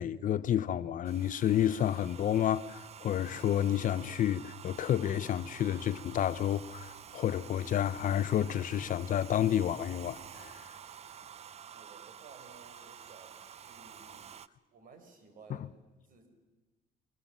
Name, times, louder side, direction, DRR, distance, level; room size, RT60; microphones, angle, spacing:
voice 1, 0.0-10.7, left 10 dB, 50° left, 0.8 m, -30 dB
Domestic sounds home sounds, 1.0-14.5, right 8 dB, 40° right, 0.7 m, -50 dB
voice 2, 11.7-14.4 14.7-16.3, right 4 dB, 55° right, 5.1 m, -56 dB
23.5 x 19.5 x 7.3 m
cardioid pair, 110°, 17 cm